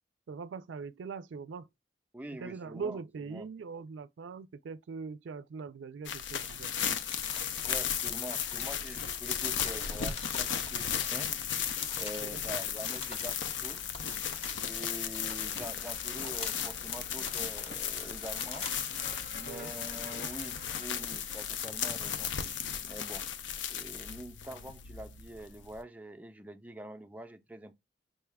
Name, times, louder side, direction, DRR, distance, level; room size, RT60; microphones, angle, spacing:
voice 1, 0.3-1.7 2.4-6.7 12.2-12.4 19.4-19.7, right 5 dB, 90° right, 0.4 m, -41 dB
voice 2, 2.1-3.5 7.6-11.3 12.0-13.9 14.6-18.7 19.3-22.3 22.8-23.3 23.7-27.7, right 1 dB, 10° right, 0.4 m, -45 dB
sound 1, 6.0-25.8, left 8 dB, 85° left, 0.5 m, -35 dB
sound 2, 6.8-18.9, left 3 dB, 35° left, 0.6 m, -48 dB
sound 3, 15.5-20.9, left 3 dB, 65° left, 1.1 m, -50 dB
5.4 x 2.3 x 3.3 m
head